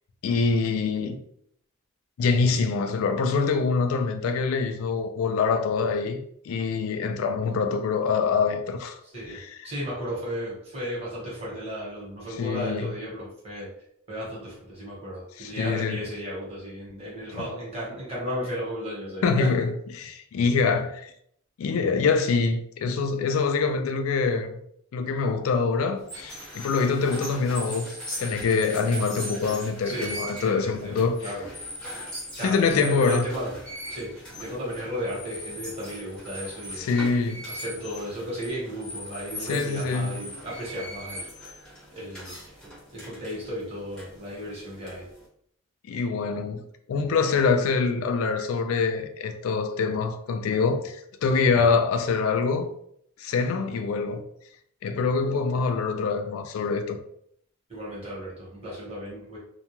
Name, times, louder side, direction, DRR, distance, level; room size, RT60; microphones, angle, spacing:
voice 1, 0.2-1.2 2.2-9.0 9.3-9.7 12.4-12.9 15.4-16.0 19.2-21.1 21.6-24.6 24.9-31.2 32.4-33.3 36.8-37.5 39.5-40.2 45.9-46.6 46.9-52.7 53.2-54.2 54.8-57.0, left 4 dB, 85° left, 0.3 m, -25 dB
voice 2, 9.0-13.7 14.1-19.5 29.8-31.5 32.3-33.5 33.9-36.9 37.5-41.5 41.9-42.6 42.9-45.1 57.7-59.4, equal, 30° right, 1.1 m, -35 dB
sound 1, 26.0-45.3, equal, 5° left, 0.7 m, -40 dB
2.3 x 2.2 x 2.9 m
head